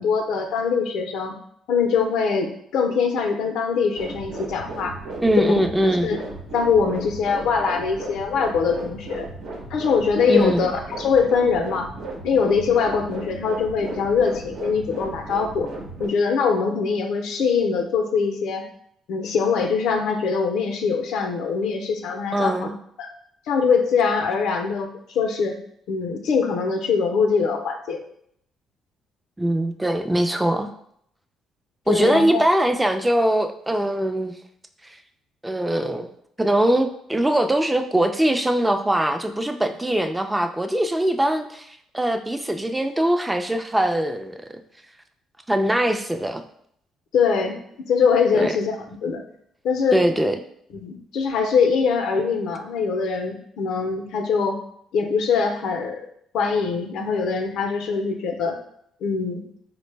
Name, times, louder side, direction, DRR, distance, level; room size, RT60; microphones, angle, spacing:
voice 1, 0.0-1.4 1.7-5.0 5.4-5.6 6.0-6.2 6.5-9.3 9.7-11.9 12.2-15.7 16.0-18.7 19.1-22.7 23.0-23.1 23.5-25.6 25.9-28.0 31.9-32.4 47.1-48.8 49.0-49.2 49.6-50.0 50.7-54.6 54.9-56.0 56.3-58.6 59.0-59.4, left 5 dB, 75° left, 4 dB, 0.5 m, -22 dB
sound 1, 3.9-16.1, right 2 dB, 75° right, 0.8 m, -35 dB
voice 2, 5.2-6.1 10.3-10.7 22.3-22.7 29.4-30.7 31.9-34.3 34.8-35.0 35.4-36.1 36.4-44.4 45.5-46.4 48.3-48.5 49.9-50.4, right 1 dB, 10° right, 7 dB, 0.4 m, -22 dB
3.9 x 2.0 x 3.2 m, 0.68 s
supercardioid pair, 75°, 0 cm